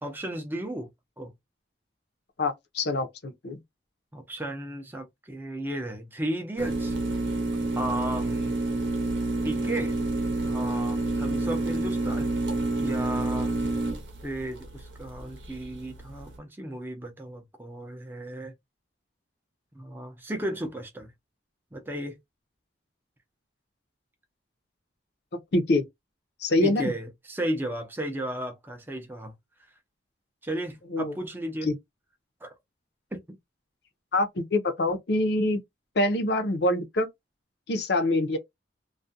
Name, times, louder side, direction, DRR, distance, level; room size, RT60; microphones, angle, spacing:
voice 1, 0.0-0.9 1.2-1.3 4.1-7.0 7.8-8.6 9.4-10.0 10.4-12.3 12.8-13.6 14.2-18.5 19.7-21.1 21.7-22.2 26.6-29.3 30.4-31.7 32.4-32.5 33.1-33.4, right 1 dB, 10° right, 0.4 m, -34 dB
voice 2, 2.4-3.6 25.5-25.8 26.4-26.9 30.9-31.1 31.6-31.7 34.1-35.6 36.0-37.1 37.7-38.4, left 2 dB, 60° left, 0.5 m, -25 dB
sound 1, 6.6-16.3, right 2 dB, 70° right, 0.7 m, -29 dB
2.4 x 2.1 x 2.6 m
head